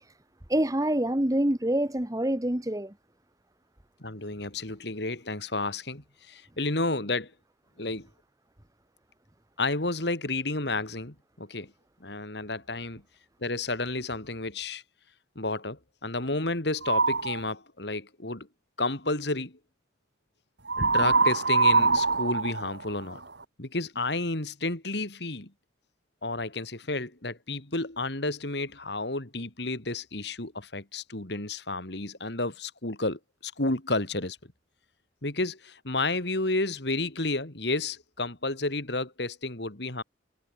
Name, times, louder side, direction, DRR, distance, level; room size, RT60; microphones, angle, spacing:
voice 1, 0.5-2.9, right 1 dB, 20° right, 1.3 m, -26 dB
voice 2, 4.0-7.3 7.8-8.1 9.6-11.7 12.0-13.0 13.4-14.8 15.3-18.5 18.8-19.6 20.8-23.2 23.6-25.5 26.2-34.4 35.2-40.0, left 2 dB, 60° left, 2.9 m, -31 dB
sound 1, 16.8-17.4 20.7-23.4, right 4 dB, 65° right, 2.6 m, -23 dB
head